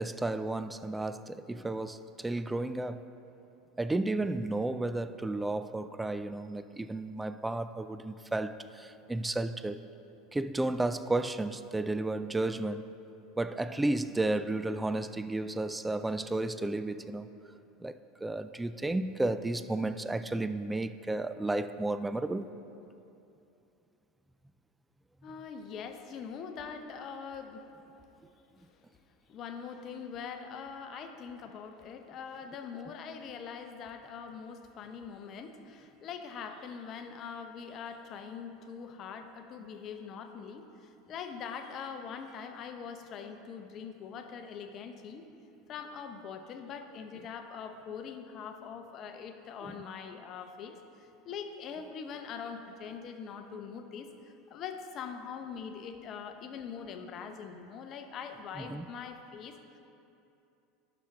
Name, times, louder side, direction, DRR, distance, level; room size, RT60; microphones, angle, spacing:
voice 1, 0.0-3.0 3.8-9.8 10.3-12.8 13.4-17.3 17.8-22.5 49.6-49.8 58.6-58.9, right 2 dB, 10° right, 0.3 m, -33 dB
voice 2, 25.2-27.8 28.4-28.8 29.3-45.2 45.7-59.8, left 6 dB, 45° left, 0.7 m, -43 dB
11.5 x 6.0 x 3.6 m
figure-of-eight pair, 80°, 0 cm